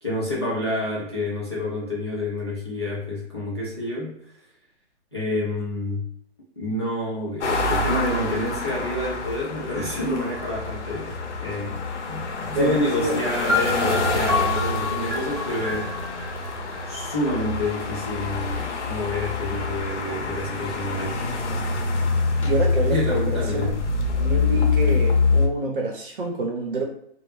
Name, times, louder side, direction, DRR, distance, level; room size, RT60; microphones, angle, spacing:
voice 1, 0.0-4.1 5.1-6.0 6.6-15.9 16.9-21.2 22.8-23.8, left 1 dB, 25° left, -7 dB, 0.4 m, -28 dB
sound 1, 7.4-25.5, left 4 dB, 85° left, 0.7 m, -26 dB
voice 2, 12.5-13.2 22.4-23.7 24.2-26.8, right 2 dB, 50° right, 1 dB, 0.7 m, -27 dB
sound 2, 13.5-17.3, left 4 dB, ahead, 0.9 m, -28 dB
2.0 x 2.0 x 3.0 m, 0.72 s
hypercardioid pair, 165°, 34 cm